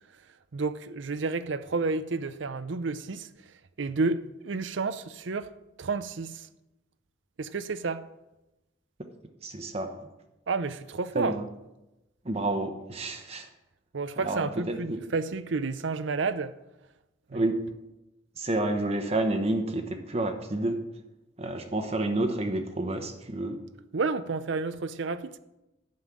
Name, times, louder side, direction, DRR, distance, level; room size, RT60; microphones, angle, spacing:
voice 1, 0.5-3.3 3.8-5.5 5.8-6.3 7.4-8.0 10.5-11.4 13.9-16.5 17.3-17.4 23.9-25.4, right 4 dB, 70° right, 0.6 m, -30 dB
voice 2, 9.4-9.9 11.1-11.4 12.2-13.5 14.2-15.0 17.3-17.5 18.4-20.8 21.4-23.6, right 2 dB, 35° right, 1.0 m, -29 dB
11.5 x 5.4 x 7.5 m
head